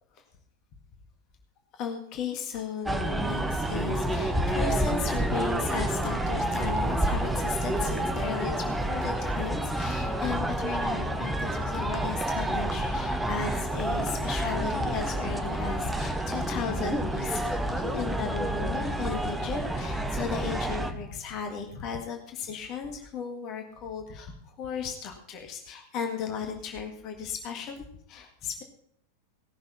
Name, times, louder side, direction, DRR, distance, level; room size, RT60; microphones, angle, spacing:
voice 1, 1.7-28.6, left 6 dB, 35° left, 4 dB, 1.8 m, -35 dB
sound 1, 2.9-20.9, right 1 dB, 5° right, 1.1 m, -29 dB
17.5 x 6.7 x 5.7 m, 0.68 s
figure-of-eight pair, 90°, 0 cm